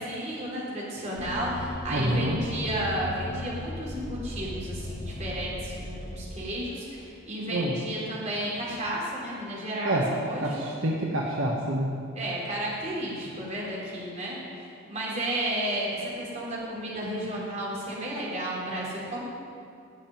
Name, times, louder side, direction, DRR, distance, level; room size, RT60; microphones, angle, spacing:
voice 1, 0.0-10.5 12.1-19.2, right 1 dB, 35° right, -6 dB, 3.9 m, -32 dB
sound 1, 1.1-6.4, left 2 dB, 40° left, 1.2 m, -37 dB
voice 2, 1.9-2.4 7.5-7.8 9.8-10.1 10.4-11.9, right 1 dB, 65° right, -2 dB, 1.2 m, -27 dB
11.5 x 7.6 x 9.3 m, 2.5 s
head